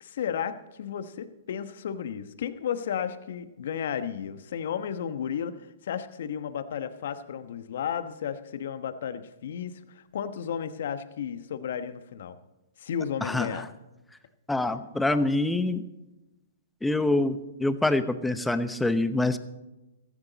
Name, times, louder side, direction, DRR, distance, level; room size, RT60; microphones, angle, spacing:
voice 1, 0.0-12.4 12.8-13.7 14.7-14.8, left 8 dB, 65° left, 11 dB, 1.1 m, -33 dB
voice 2, 13.2-13.6 14.5-15.8 16.8-19.4, left 2 dB, 5° left, 11 dB, 0.9 m, -25 dB
16.0 x 15.0 x 4.1 m, 1.0 s
hypercardioid pair, 120°, 0 cm